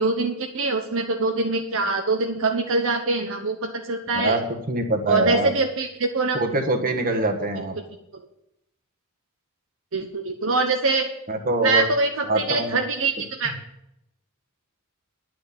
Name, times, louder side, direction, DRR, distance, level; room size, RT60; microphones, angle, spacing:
voice 1, 0.0-4.4 5.1-6.4 9.9-11.1 11.6-13.5, right 3 dB, 65° right, 4 dB, 0.9 m, -24 dB
voice 2, 4.1-5.5 6.3-7.7 11.3-11.8 12.3-12.8 13.4-13.5, right 2 dB, 40° right, 4 dB, 1.4 m, -24 dB
10.0 x 6.1 x 8.4 m, 0.81 s
head